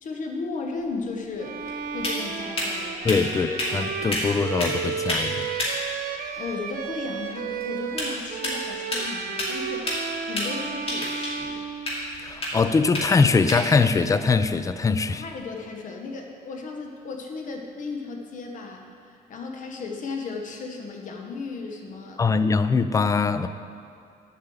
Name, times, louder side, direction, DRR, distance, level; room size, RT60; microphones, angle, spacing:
voice 1, 0.0-1.6 1.9-3.2 6.1-11.6 15.1-22.4, left 4 dB, 50° left, 2 dB, 1.1 m, -35 dB
sound 1, 0.8-15.5, left 1 dB, 35° left, 2.4 m, -33 dB
Bowed string instrument, 1.4-12.4, right 7 dB, 60° right, 0.7 m, -33 dB
voice 2, 3.0-5.5 12.2-15.2 22.2-23.5, left 4 dB, 20° left, 12 dB, 0.4 m, -22 dB
7.7 x 5.6 x 7.5 m, 2.4 s
cardioid pair, 110°, 17 cm